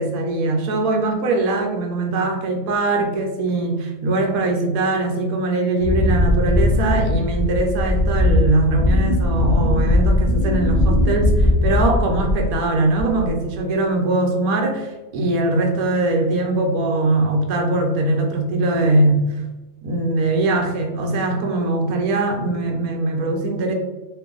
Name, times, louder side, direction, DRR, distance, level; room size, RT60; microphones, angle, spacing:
voice 1, 0.0-19.3 19.8-23.7, right 2 dB, 75° right, 3 dB, 1.1 m, -21 dB
Wind, 5.8-12.6 13.0-13.4, left 1 dB, 40° left, 0.7 m, -19 dB
2.6 x 2.5 x 3.6 m, 1.1 s
omnidirectional pair, 1.6 m